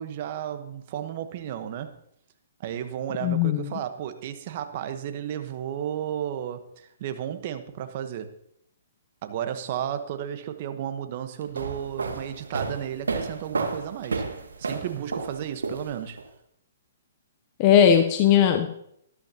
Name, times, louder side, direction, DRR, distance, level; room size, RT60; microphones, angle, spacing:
voice 1, 0.0-1.9 2.6-8.3 9.2-14.3 14.6-16.2, right 10 dB, 45° right, 9 dB, 1.1 m, -33 dB
voice 2, 3.2-3.7 17.6-18.7, left 9 dB, 35° left, 6 dB, 0.8 m, -18 dB
sound 1, 11.4-16.2, right 4 dB, 90° right, 1.4 m, -31 dB
13.0 x 12.0 x 2.9 m, 0.73 s
hypercardioid pair, 140°, 0 cm